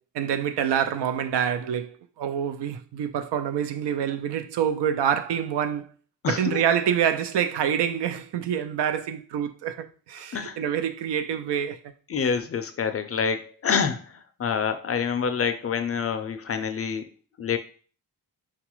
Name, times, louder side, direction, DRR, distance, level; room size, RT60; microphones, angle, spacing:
voice 1, 0.1-5.9 6.3-11.8, right 9 dB, 85° right, 0.5 m, -26 dB
voice 2, 6.2-6.6 10.3-10.6 12.1-14.1 14.4-17.1 17.4-17.6, left 6 dB, 40° left, 0.4 m, -27 dB
3.9 x 2.3 x 3.0 m
cardioid pair, 90°, 40 cm